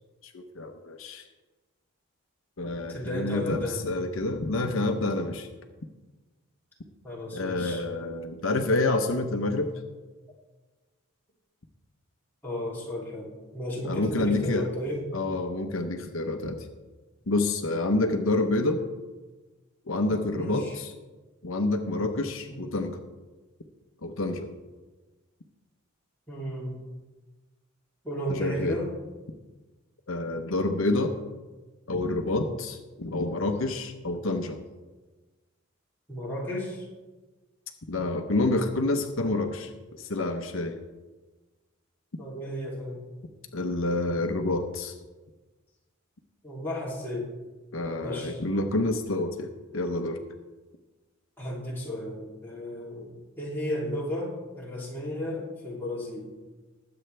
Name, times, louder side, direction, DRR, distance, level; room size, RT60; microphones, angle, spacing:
voice 1, 0.2-1.3 2.6-5.5 7.3-9.7 13.8-14.7 15.1-16.7 17.3-18.9 19.9-20.9 21.4-23.0 24.0-24.5 28.3-28.8 30.1-31.2 31.9-34.6 37.9-39.7 40.0-40.8 43.5-44.9 47.7-50.2, left 2 dB, 70° left, 5 dB, 0.9 m, -28 dB
voice 2, 2.9-3.8 7.0-7.8 12.4-13.3 13.5-15.1 20.3-20.8 22.5-22.6 26.3-26.8 28.0-28.9 36.1-36.9 42.2-43.0 46.4-47.3 48.0-48.4 51.4-56.3, equal, 10° left, -6 dB, 3.0 m, -34 dB
20.5 x 7.9 x 3.4 m, 1.2 s
head